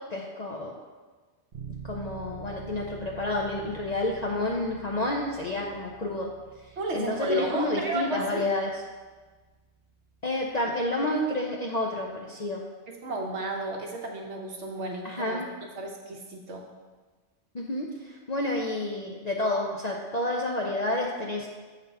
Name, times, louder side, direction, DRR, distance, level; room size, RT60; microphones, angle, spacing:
voice 1, 0.1-0.7 1.8-6.3 6.7-8.8 10.2-12.6 15.0-15.5 17.5-21.5, left 1 dB, 45° left, -1 dB, 0.6 m, -30 dB
Bass guitar, 1.5-11.2, right 6 dB, 50° right, 0.8 m, -48 dB
voice 2, 6.8-8.4 12.9-15.4 15.7-16.6, right 1 dB, 70° right, 1 dB, 1.3 m, -33 dB
8.0 x 4.1 x 5.4 m, 1.3 s
omnidirectional pair, 1.2 m